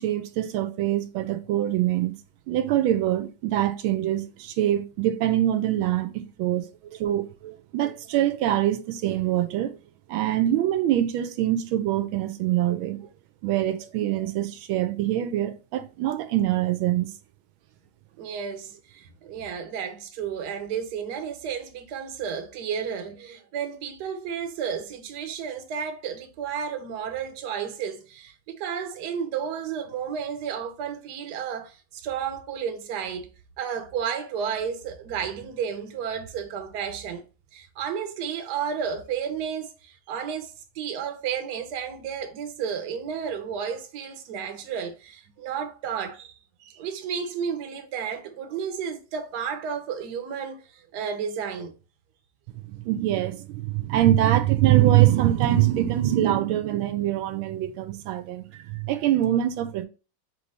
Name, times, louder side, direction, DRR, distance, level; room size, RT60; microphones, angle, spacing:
voice 1, 0.0-2.1 2.5-6.7 7.0-9.7 10.1-13.0 13.4-17.1 52.7-59.9, right 13 dB, 90° right, 1.4 m, -24 dB
voice 2, 18.2-33.3 33.6-37.2 37.5-51.7, right 7 dB, 65° right, 1.2 m, -32 dB
3.6 x 3.1 x 3.9 m
omnidirectional pair, 2.2 m